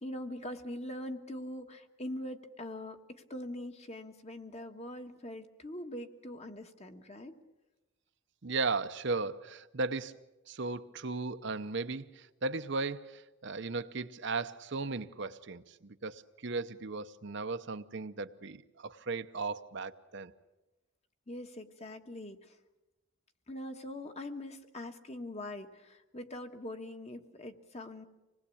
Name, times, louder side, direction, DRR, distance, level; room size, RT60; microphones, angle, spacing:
voice 1, 0.0-7.3 21.3-22.6 23.5-28.1, left 1 dB, 30° left, 1.3 m, -42 dB
voice 2, 8.4-10.1 10.5-20.3, right 3 dB, 55° right, 0.8 m, -36 dB
26.0 x 19.5 x 8.5 m
head